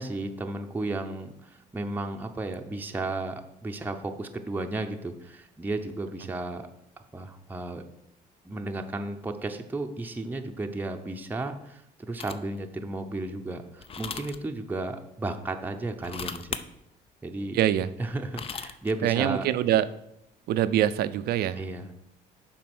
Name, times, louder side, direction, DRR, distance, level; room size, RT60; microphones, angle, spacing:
voice 1, 0.0-6.7 7.0-7.8 8.4-16.6 17.2-17.6 18.0-19.5 21.6-21.9, right 2 dB, 10° right, 4 dB, 0.7 m, -34 dB
sound 1, 12.2-12.6 13.8-14.4 15.9-16.6 18.1-18.9, left 6 dB, 35° left, 0.5 m, -37 dB
voice 2, 17.5-17.9 19.0-19.9 20.5-21.6, right 11 dB, 70° right, 14 dB, 0.5 m, -24 dB
7.6 x 4.6 x 6.1 m, 0.79 s
cardioid pair, 110°, 17 cm